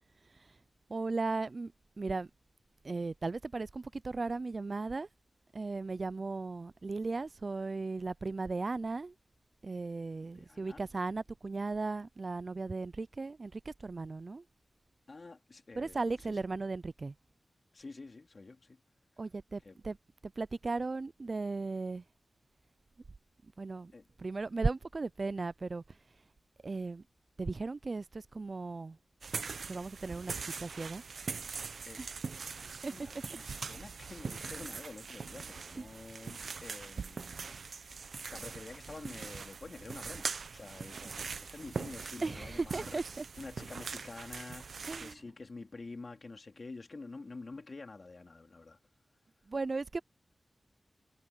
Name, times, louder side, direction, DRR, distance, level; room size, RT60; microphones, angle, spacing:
voice 1, 0.9-1.7 2.0-2.3 2.8-5.1 5.5-9.1 9.6-14.4 15.8-17.1 19.2-20.0 20.2-22.0 23.6-23.9 24.2-25.8 26.6-27.0 27.4-29.0 29.7-30.3 30.6-31.0 32.0-32.2 32.8-32.9 35.7-35.9 41.0-41.1 42.2-43.3 44.8-45.2 49.5-50.0, right 3 dB, 45° right, 0.3 m, -36 dB
voice 2, 10.3-10.8 15.1-16.4 17.7-18.8 19.6-19.8 23.9-24.1 31.9-32.0 32.7-43.0 43.4-48.8, left 3 dB, 50° left, 2.6 m, -48 dB
sound 1, 29.2-45.1, right 5 dB, 80° right, 0.6 m, -42 dB
wide cardioid pair, 105°, 0 cm